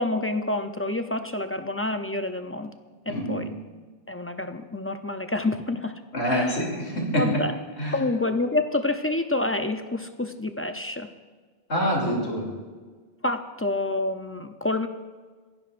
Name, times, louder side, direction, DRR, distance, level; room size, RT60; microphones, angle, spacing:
voice 1, 0.0-2.7 3.1-3.5 4.1-5.9 6.3-6.6 7.1-7.5 7.9-11.1 13.2-14.9, left 2 dB, 20° left, 7 dB, 0.4 m, -28 dB
voice 2, 3.1-3.4 6.1-7.2 7.8-7.9 11.7-12.5, equal, 90° left, -2 dB, 3.3 m, -26 dB
27.0 x 11.0 x 2.6 m, 1.5 s
omnidirectional pair, 1.1 m